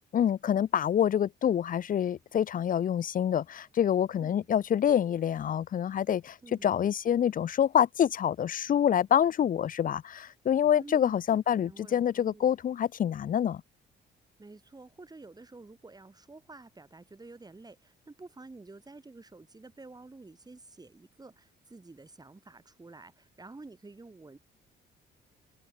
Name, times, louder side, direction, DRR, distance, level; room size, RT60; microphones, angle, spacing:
voice 1, 0.1-13.6, left 9 dB, 45° left, 0.5 m, -26 dB
voice 2, 10.7-11.2 11.5-12.5 14.4-24.4, right 3 dB, 20° right, 4.3 m, -50 dB
cardioid pair, 90°, 20 cm